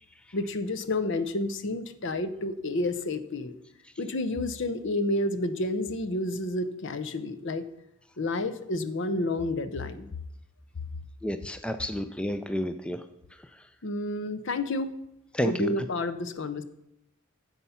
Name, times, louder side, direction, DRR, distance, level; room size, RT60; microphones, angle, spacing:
voice 1, 0.3-3.5 4.0-7.6 8.2-10.1 13.8-14.9 15.4-16.6, left 2 dB, 55° left, 12 dB, 0.7 m, -30 dB
voice 2, 11.2-13.0 15.3-15.7, equal, 5° left, 9 dB, 0.3 m, -30 dB
9.8 x 7.3 x 5.6 m, 0.84 s
head